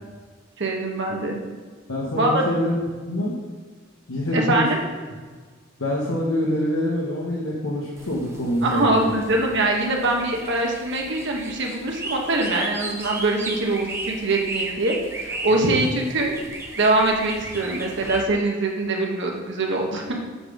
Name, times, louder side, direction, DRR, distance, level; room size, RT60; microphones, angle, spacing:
voice 1, 0.6-1.4 2.2-2.5 4.3-4.8 8.6-16.3 16.8-20.1, right 2 dB, 60° right, 0 dB, 1.5 m, -23 dB
voice 2, 1.9-2.7 3.0-3.4 4.1-4.7 5.8-9.1 15.5-15.9, left 1 dB, 85° left, -5 dB, 1.4 m, -25 dB
sound 1, 8.0-18.2, right 2 dB, 15° right, 1.0 m, -35 dB
7.8 x 5.8 x 5.0 m, 1.5 s
head